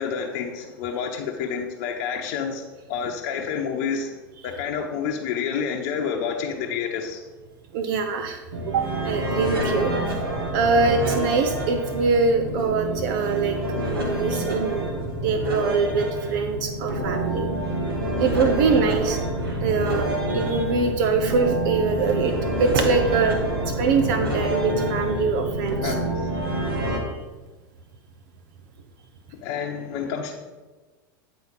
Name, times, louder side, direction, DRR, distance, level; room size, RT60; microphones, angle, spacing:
voice 1, 0.0-2.6 2.9-4.1 4.4-7.2 25.8-26.3 29.4-30.4, left 6 dB, 55° left, 0 dB, 0.9 m, -29 dB
voice 2, 7.7-9.9 10.5-13.6 13.8-14.9 15.2-17.5 18.2-19.2 19.6-23.4 23.8-26.0, right 4 dB, 60° right, 7 dB, 0.8 m, -23 dB
sound 1, 8.5-27.0, right 1 dB, 85° right, 1.6 m, -27 dB
9.7 x 4.2 x 5.4 m, 1.2 s
hypercardioid pair, 95°, 12 cm